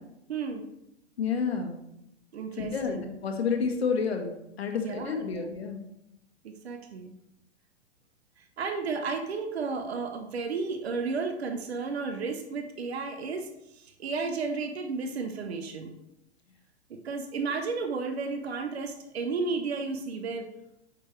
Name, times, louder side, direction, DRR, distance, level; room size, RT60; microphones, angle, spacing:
voice 1, 0.3-0.7 2.3-3.0 4.8-5.5 6.4-7.1 8.4-15.9 16.9-20.5, right 4 dB, 65° right, 6 dB, 0.9 m, -33 dB
voice 2, 1.2-1.7 2.6-4.3 4.6-5.8, left 5 dB, 65° left, 4 dB, 1.5 m, -29 dB
9.0 x 6.0 x 3.2 m, 0.85 s
figure-of-eight pair, 105°, 34 cm